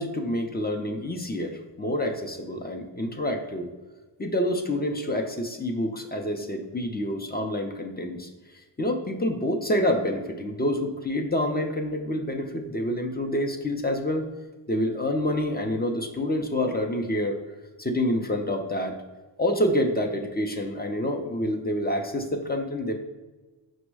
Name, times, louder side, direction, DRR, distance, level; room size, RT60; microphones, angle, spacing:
voice 1, 0.0-3.7 4.2-8.3 8.8-14.2 14.7-17.4 17.8-18.9 19.4-22.9, left 1 dB, 20° left, 3 dB, 0.4 m, -27 dB
5.2 x 2.0 x 4.6 m, 1.2 s
wide cardioid pair, 100°, 48 cm